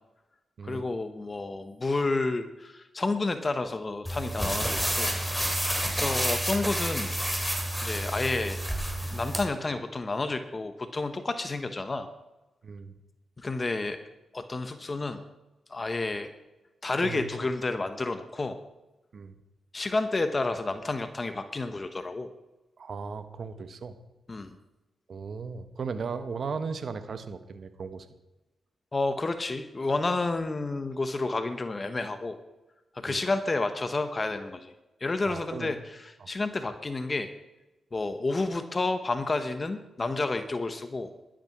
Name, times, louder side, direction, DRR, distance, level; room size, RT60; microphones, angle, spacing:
voice 1, 0.6-5.2 5.9-7.5 7.8-8.6 9.1-12.1 13.4-14.0 14.3-15.2 15.7-16.3 16.8-18.6 19.7-22.3 24.3-24.5 28.9-32.4 32.9-34.7 35.0-37.3 37.9-41.1, left 3 dB, 35° left, 9 dB, 1.1 m, -30 dB
sound 1, 4.1-9.4, right 1 dB, ahead, 3.2 m, -29 dB
voice 2, 12.6-12.9 17.0-17.5 19.1-19.3 22.8-23.9 25.1-28.1 33.1-33.2 35.3-35.7 36.2-36.3, right 5 dB, 60° right, 10 dB, 1.3 m, -36 dB
12.0 x 9.0 x 6.0 m, 1.0 s
supercardioid pair, 50°, 0 cm